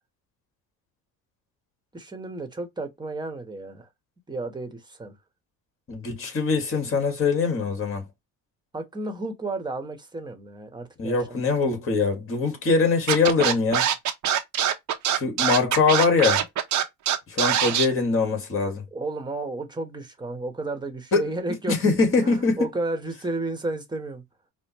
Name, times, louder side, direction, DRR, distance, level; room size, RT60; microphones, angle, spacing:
voice 1, 1.9-3.9 4.3-5.1 8.7-11.4 18.9-21.9 22.2-24.2, right 2 dB, 10° right, 1.1 m, -32 dB
voice 2, 5.9-8.1 11.0-13.9 15.1-16.5 17.3-18.8 21.1-21.2 21.7-22.7, left 4 dB, 40° left, 1.8 m, -23 dB
Scratching (performance technique), 13.1-17.8, right 10 dB, 55° right, 0.9 m, -23 dB
5.1 x 2.2 x 3.0 m
cardioid pair, 100°, 35 cm